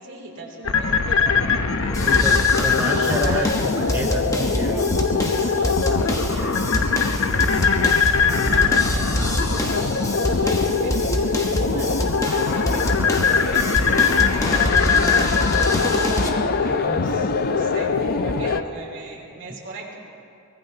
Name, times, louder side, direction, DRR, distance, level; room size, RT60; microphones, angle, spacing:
voice 1, 0.0-2.2 2.6-3.5 4.8-15.1 15.7-20.0, right 2 dB, 60° right, -2 dB, 3.2 m, -38 dB
sound 1, 0.6-18.6, left 5 dB, 70° left, 0.7 m, -21 dB
sound 2, 1.9-16.3, left 1 dB, 15° left, 1.2 m, -27 dB
voice 2, 2.0-4.9 16.7-17.0 19.5-19.6, right 1 dB, 10° right, 1 dB, 0.6 m, -30 dB
sound 3, 12.3-18.6, left 6 dB, 45° left, 0.4 m, -30 dB
23.5 x 20.0 x 2.9 m, 2.6 s
head